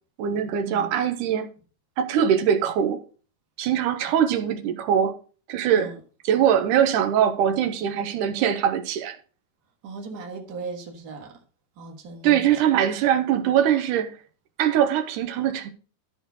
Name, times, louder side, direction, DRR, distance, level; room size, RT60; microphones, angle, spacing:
voice 1, 0.2-1.5 2.0-3.0 3.6-5.2 5.5-5.9 6.2-9.2 12.2-14.2 14.6-15.7, right 9 dB, 85° right, 2.3 m, -22 dB
voice 2, 9.8-11.3 11.8-12.6, right 3 dB, 40° right, 1.7 m, -37 dB
12.5 x 4.3 x 6.3 m
omnidirectional pair, 3.6 m